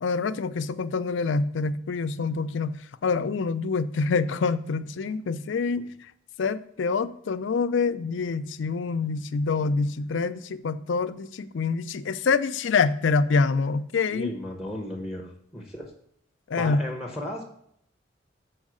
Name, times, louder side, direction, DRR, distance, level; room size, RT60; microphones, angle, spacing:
voice 1, 0.0-2.8 3.0-5.9 6.4-14.3 16.5-16.8, left 4 dB, 70° left, 11 dB, 0.4 m, -26 dB
voice 2, 14.1-15.9 16.5-17.4, left 1 dB, 5° right, 1 dB, 1.0 m, -35 dB
6.4 x 4.6 x 6.1 m, 0.69 s
head